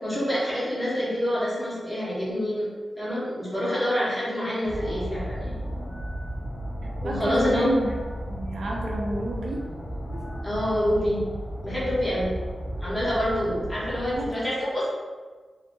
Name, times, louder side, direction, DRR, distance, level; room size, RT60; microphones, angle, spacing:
voice 1, 0.0-2.7 3.0-5.6 7.0-7.7 10.4-11.2 11.6-12.3 12.8-14.9, equal, 10° left, -10 dB, 1.1 m, -26 dB
sound 1, 4.6-14.3, equal, 75° left, 0.6 m, -34 dB
voice 2, 6.8-7.9 8.3-9.6 10.1-10.3 14.1-14.5, right 2 dB, 85° right, -3 dB, 0.5 m, -30 dB
2.8 x 2.7 x 2.6 m, 1.4 s
wide cardioid pair, 145°, 0 cm